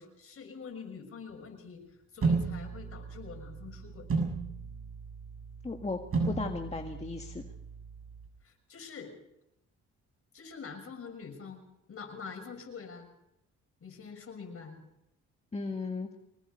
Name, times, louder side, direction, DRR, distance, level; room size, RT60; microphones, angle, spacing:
voice 1, 0.0-4.1 8.4-9.1 10.3-11.6 11.9-13.1 13.8-14.8, left 5 dB, 50° left, 4 dB, 6.5 m, -45 dB
sound 1, 2.2-8.3, right 4 dB, 45° right, 6.9 m, -34 dB
voice 2, 5.6-6.0 6.3-7.5 15.5-16.1, left 3 dB, 20° left, 3 dB, 1.8 m, -35 dB
24.5 x 20.0 x 5.5 m, 0.82 s
cardioid pair, 90°, 30 cm